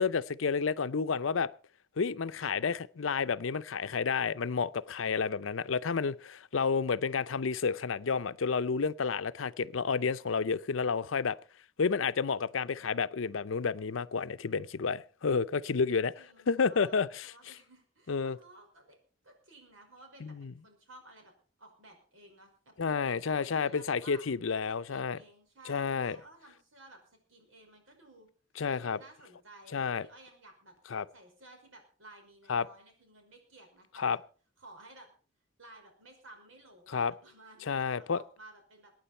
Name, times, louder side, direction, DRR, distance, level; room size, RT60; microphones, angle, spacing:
voice 1, 0.0-1.5 2.0-11.4 11.8-16.1 16.5-17.3 18.1-18.4 20.2-20.5 22.8-25.2 25.7-26.2 28.6-29.0 29.7-30.1 30.9-31.0 32.5-32.7 33.9-34.2 36.9-37.1 37.7-38.2, left 5 dB, 80° left, 0.6 m, -30 dB
voice 2, 12.5-13.0 15.9-19.0 19.2-21.3 21.6-24.2 24.6-28.3 28.7-30.8 31.1-34.2 34.6-35.1 35.6-38.9, right 2 dB, 90° right, 5.4 m, -56 dB
22.5 x 9.6 x 4.4 m
head